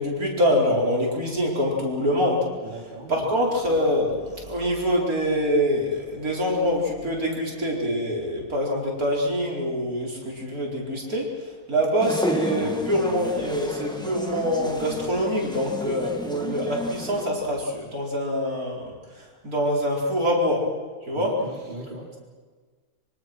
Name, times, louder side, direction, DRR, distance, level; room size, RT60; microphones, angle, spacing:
voice 1, 0.0-2.5 3.1-20.7 21.1-21.4, equal, 75° right, -2 dB, 5.2 m, -25 dB
voice 2, 2.6-3.3 21.1-22.1, right 2 dB, 30° right, -1 dB, 3.2 m, -38 dB
sound 1, 12.0-17.3, equal, 5° left, 2.1 m, -32 dB
25.5 x 24.5 x 6.2 m, 1.5 s
omnidirectional pair, 1.5 m